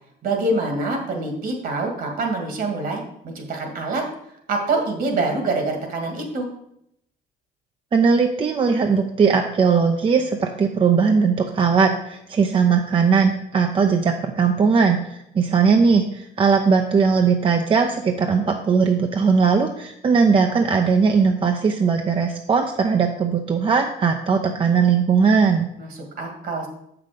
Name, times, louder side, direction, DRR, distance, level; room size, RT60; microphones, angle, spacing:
voice 1, 0.2-4.0 4.5-6.5 25.8-25.9 26.2-26.7, right 2 dB, 60° right, 3 dB, 2.1 m, -25 dB
voice 2, 7.9-25.7, right 5 dB, 30° right, 4 dB, 0.6 m, -19 dB
7.1 x 5.9 x 5.1 m, 0.76 s
cardioid pair, 110°, 17 cm